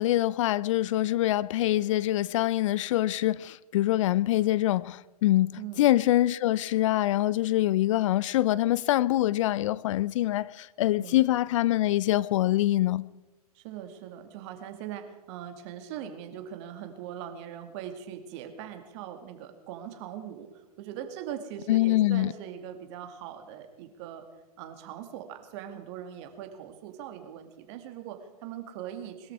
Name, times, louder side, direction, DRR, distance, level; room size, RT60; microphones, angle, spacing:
voice 1, 0.0-5.5 5.8-13.0 21.7-22.3, left 15 dB, 55° left, 0.5 m, -24 dB
voice 2, 13.5-24.2 24.6-29.3, right 10 dB, 45° right, 2.4 m, -41 dB
21.5 x 13.5 x 4.8 m
hypercardioid pair, 110°, 20 cm